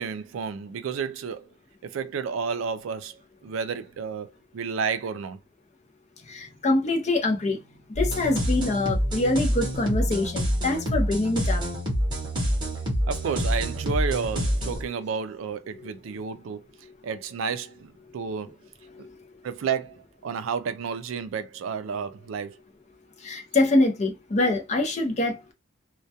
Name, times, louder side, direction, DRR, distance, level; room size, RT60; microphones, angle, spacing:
voice 1, 0.0-1.5 1.8-4.3 4.5-5.4 13.1-16.7 17.0-18.6 19.4-22.6, right 6 dB, 80° right, 0.3 m, -31 dB
voice 2, 6.3-7.6 8.0-11.6 14.8-14.9 15.8-15.9 19.0-19.1 23.2-25.5, left 2 dB, 35° left, 0.5 m, -25 dB
sound 1, 7.9-14.8, equal, 25° right, 0.8 m, -27 dB
2.2 x 2.2 x 2.7 m
head